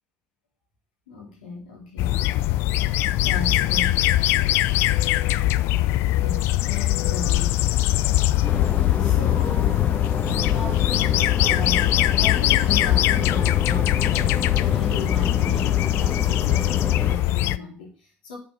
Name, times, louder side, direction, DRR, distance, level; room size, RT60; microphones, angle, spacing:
voice 1, 1.1-2.2 3.2-4.6 6.2-7.6 9.0-9.9 10.2-18.4, left 3 dB, 85° left, -3 dB, 3.3 m, -36 dB
sound 1, 2.0-17.6, left 15 dB, 60° left, 0.4 m, -21 dB
sound 2, 8.4-17.2, left 4 dB, 35° left, 1.1 m, -29 dB
6.9 x 5.2 x 6.7 m, 0.38 s
hypercardioid pair, 65°, 5 cm